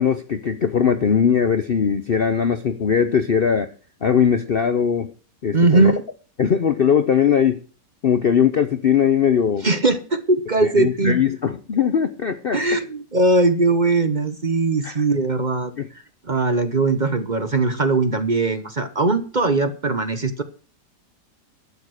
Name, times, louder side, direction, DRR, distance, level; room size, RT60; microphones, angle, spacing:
voice 1, 0.0-3.7 4.0-5.1 5.4-5.9 6.4-7.6 8.0-9.6 10.6-12.6 14.8-15.0 15.8-15.9, left 7 dB, 50° left, 11 dB, 0.7 m, -20 dB
voice 2, 5.5-6.0 9.6-11.2 12.5-15.7 16.3-20.4, right 2 dB, 35° right, 10 dB, 1.0 m, -20 dB
12.0 x 8.2 x 6.4 m, 0.39 s
omnidirectional pair, 1.7 m